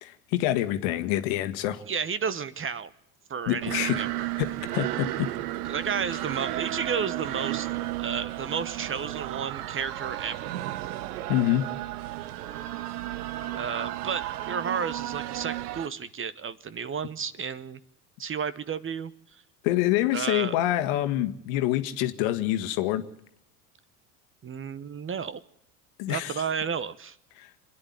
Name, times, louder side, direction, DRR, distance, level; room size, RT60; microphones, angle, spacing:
voice 1, 0.0-1.8 3.5-4.0 4.4-4.5 4.7-5.3 11.3-11.7 19.6-23.0 26.0-26.4 27.4-27.5, left 14 dB, 65° left, 9 dB, 1.7 m, -26 dB
voice 2, 1.9-2.9 3.3-4.3 5.6-7.7 8.0-10.6 13.5-17.8 18.2-19.4 20.1-20.6 24.4-25.4 26.1-27.2, right 6 dB, 25° right, 16 dB, 1.1 m, -32 dB
sound 1, 3.6-15.9, right 15 dB, 75° right, 1.0 m, -33 dB
26.5 x 10.5 x 9.7 m, 0.77 s
hypercardioid pair, 80°, 46 cm